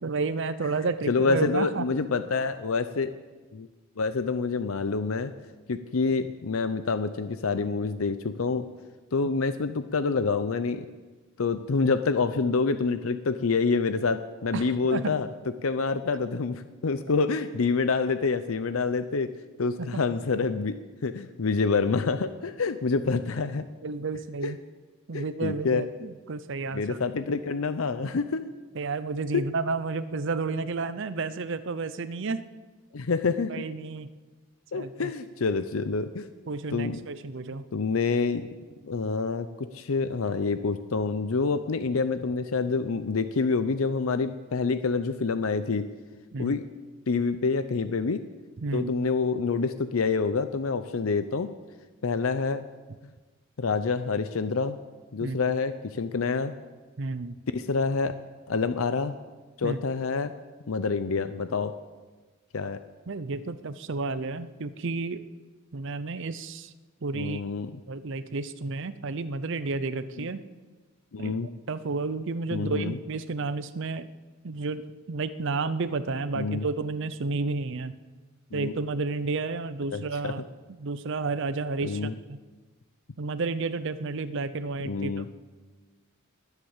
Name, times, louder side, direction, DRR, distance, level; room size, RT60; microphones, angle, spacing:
voice 1, 0.0-1.9 14.5-15.2 19.8-20.0 23.8-24.6 25.1-27.0 28.7-32.4 33.5-34.1 34.7-35.1 36.5-37.6 46.3-46.6 48.6-48.9 55.2-55.4 57.0-57.4 59.6-59.8 63.1-65.2 65.7-66.7 67.0-67.4 67.9-70.4 71.2-71.4 71.7-74.1 74.4-78.0 78.5-80.4 80.8-82.4 83.2-85.1, right 3 dB, 60° right, 13 dB, 0.6 m, -31 dB
voice 2, 1.1-3.2 3.5-3.7 4.0-5.3 5.7-8.7 9.1-10.9 11.4-15.3 15.6-19.3 19.6-23.6 24.4-24.5 25.1-25.8 26.7-28.5 29.3-29.4 32.9-33.5 34.7-36.3 36.7-37.0 37.7-38.5 38.8-45.9 46.4-46.6 47.1-48.2 48.7-51.5 52.0-52.6 53.6-54.8 55.1-56.5 57.5-58.1 58.5-59.1 59.6-60.3 60.7-61.7 62.5-62.8 67.1-67.8 70.2-70.3 71.1-71.5 72.5-73.0 76.4-76.7 78.5-78.7 79.9-80.3 81.8-82.1 84.8-85.3, left 4 dB, 80° left, 11 dB, 0.6 m, -27 dB
20.5 x 8.2 x 7.2 m, 1.3 s
head